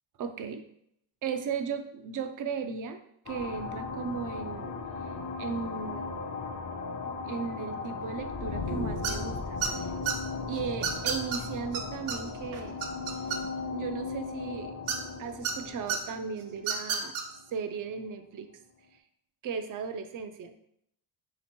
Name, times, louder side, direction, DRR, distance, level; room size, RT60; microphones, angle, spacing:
voice 1, 0.2-0.6 1.2-3.0 3.3-4.7 5.4-6.1 7.3-9.9 10.5-12.8 13.7-14.7 15.2-17.1 17.5-18.5 19.4-20.5, right 6 dB, 45° right, 8 dB, 0.4 m, -36 dB
sound 1, 3.3-17.4, left 4 dB, 40° left, 0.5 m, -37 dB
sound 2, 9.0-9.3 9.6-10.1 10.8-11.4 11.7-11.8 12.1-12.2 12.5-13.7 14.9-15.5 15.9-16.0 16.6-17.2, right 7 dB, 85° right, 0.8 m, -30 dB
3.3 x 2.9 x 4.3 m, 0.73 s
cardioid pair, 150°, 46 cm